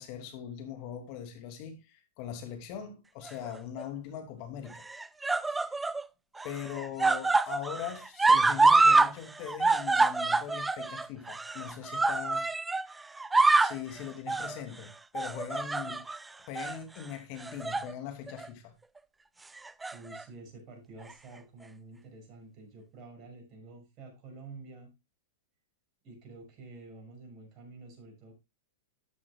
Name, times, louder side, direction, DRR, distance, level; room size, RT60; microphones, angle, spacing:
voice 1, 0.0-4.8 5.5-5.7 6.4-12.5 13.6-16.0 16.4-18.7, left 9 dB, 50° left, 2.7 m, -41 dB
sound 1, 3.3-3.8 4.7-6.0 6.4-9.1 9.4-12.9 13.2-13.8 14.3-14.6 15.2-16.2 16.6-16.8 17.4-17.9 18.3-18.5 19.6-20.2 21.1-21.2, right 3 dB, 10° right, 0.4 m, -26 dB
voice 2, 19.9-24.9 26.0-28.3, right 3 dB, 40° right, 6.0 m, -49 dB
13.0 x 8.5 x 2.3 m
hypercardioid pair, 105°, 0 cm